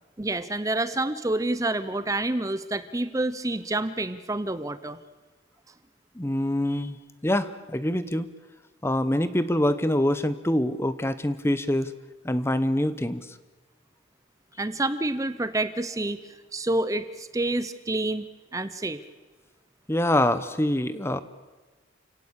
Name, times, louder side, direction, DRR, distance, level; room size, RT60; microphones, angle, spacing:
voice 1, 0.2-5.0 14.6-16.2 16.5-18.3 18.5-19.0, right 2 dB, 15° right, 13 dB, 0.7 m, -28 dB
voice 2, 6.2-7.0 7.2-8.3 8.8-11.9 12.2-13.4 19.9-21.2, left 1 dB, 15° left, 13 dB, 0.8 m, -25 dB
29.0 x 17.5 x 8.3 m, 1.3 s
head